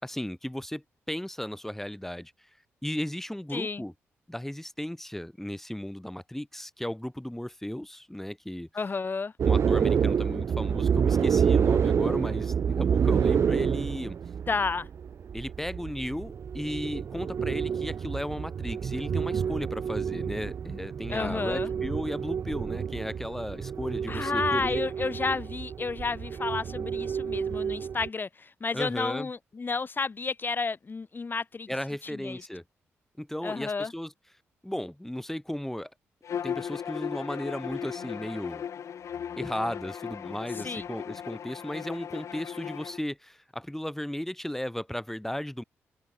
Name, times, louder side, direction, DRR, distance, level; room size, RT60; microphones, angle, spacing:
voice 1, 0.0-2.3 2.8-3.9 4.3-8.7 9.4-14.2 15.3-24.8 28.7-29.3 31.7-32.6 33.2-34.1 34.6-35.9 36.4-38.6 39.4-45.6, left 1 dB, 5° left, 3.0 m, -35 dB
voice 2, 3.5-3.8 8.7-9.3 14.5-14.9 21.1-21.7 24.1-31.7 32.1-32.4 33.4-33.9 40.6-40.8, left 4 dB, 40° left, 2.6 m, -31 dB
sound 1, 9.4-28.1, right 7 dB, 60° right, 1.3 m, -28 dB
Bowed string instrument, 36.2-43.0, left 8 dB, 70° left, 5.5 m, -37 dB
open air
supercardioid pair, 60°, 5 cm